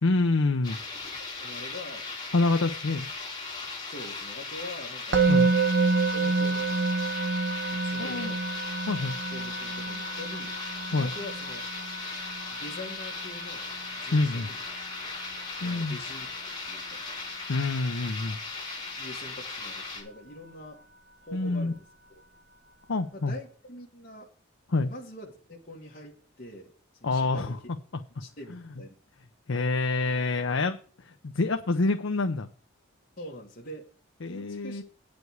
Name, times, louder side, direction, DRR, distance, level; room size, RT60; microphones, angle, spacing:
voice 1, 0.0-0.8 2.3-3.1 5.3-5.5 8.0-8.3 8.9-9.1 10.9-11.1 14.1-14.5 15.6-16.0 17.5-18.4 21.3-21.7 22.9-23.4 24.7-24.9 27.0-27.6 28.5-28.6 29.5-32.5 34.2-34.8, left 3 dB, 75° left, 6 dB, 0.7 m, -27 dB
sound 1, 0.6-20.0, left 3 dB, 20° left, 3.2 m, -38 dB
voice 2, 1.3-2.1 3.9-5.2 6.1-7.0 7.7-8.4 9.3-10.5 10.9-11.6 12.5-13.7 14.0-14.6 15.6-16.3 16.6-17.1 19.0-20.8 21.3-21.8 23.1-24.3 24.9-26.7 27.0-27.6 28.2-28.9 33.2-33.9 34.3-34.8, left 1 dB, 45° left, -4 dB, 2.0 m, -44 dB
Musical instrument, 5.1-16.2, right 4 dB, 55° right, 0.9 m, -29 dB
9.3 x 5.2 x 8.0 m, 0.41 s
head